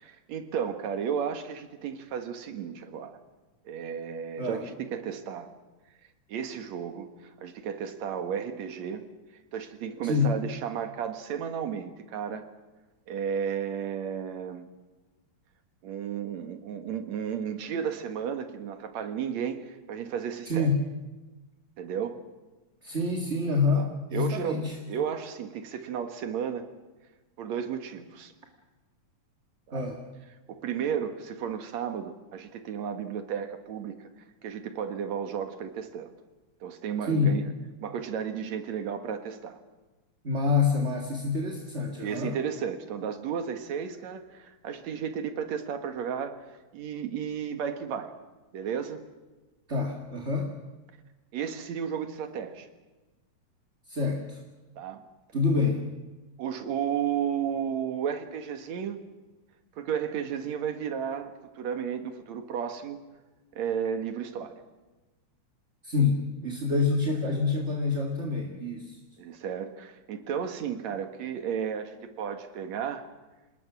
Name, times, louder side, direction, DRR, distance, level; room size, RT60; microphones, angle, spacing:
voice 1, 0.0-3.2 3.7-5.5 6.3-7.1 7.4-9.1 9.5-12.4 13.1-14.6 15.8-20.7 21.8-22.2 23.8-26.6 27.4-28.3 29.7-29.8 30.5-34.1 34.4-36.1 36.6-37.4 37.8-39.6 42.0-46.4 46.7-48.1 48.5-49.0 51.3-52.7 54.8-55.0 56.4-59.0 59.8-63.0 63.6-64.5 69.2-73.1, right 7 dB, 70° right, 7 dB, 2.8 m, -33 dB
voice 2, 4.4-4.7 10.0-10.3 20.5-20.8 22.8-24.8 29.7-30.1 37.1-37.4 40.2-42.4 49.7-50.5 53.9-54.4 55.3-55.8 65.8-69.0, left 4 dB, 25° right, 1 dB, 1.9 m, -27 dB
27.5 x 20.0 x 6.2 m, 1.2 s
omnidirectional pair, 3.3 m